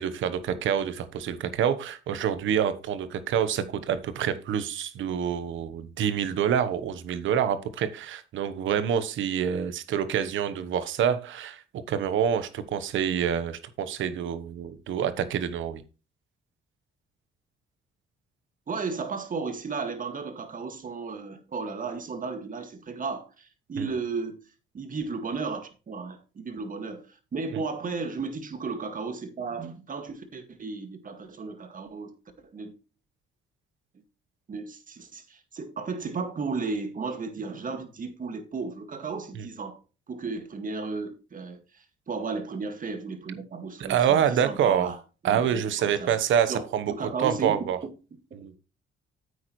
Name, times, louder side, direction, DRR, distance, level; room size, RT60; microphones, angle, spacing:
voice 1, 0.0-15.8 23.8-23.9 39.3-39.5 43.8-45.0 45.2-46.9 47.2-47.8 48.3-48.5, right 8 dB, 75° right, 1.1 m, -27 dB
voice 2, 18.7-24.4 24.7-27.1 27.3-32.1 32.4-32.7 34.5-39.8 40.1-45.0 45.2-46.2 46.5-47.6, right 4 dB, 40° right, 2.0 m, -34 dB
9.7 x 8.3 x 3.2 m
cardioid pair, 90°, 20 cm